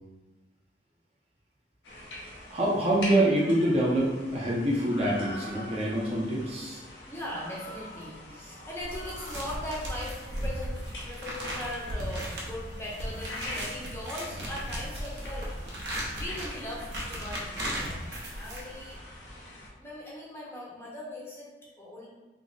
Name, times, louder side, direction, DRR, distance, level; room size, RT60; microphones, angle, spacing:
sound 1, 1.8-19.7, left 1 dB, 80° left, 0.7 m, -44 dB
voice 1, 2.5-6.8, right 1 dB, 35° right, -4 dB, 0.6 m, -26 dB
voice 2, 7.1-15.5 16.1-18.1 18.3-19.0 19.8-22.1, left 1 dB, 15° left, -5 dB, 0.7 m, -39 dB
sound 2, 8.8-19.0, equal, 70° right, 0.8 m, -36 dB
3.6 x 2.0 x 3.8 m, 1.2 s
head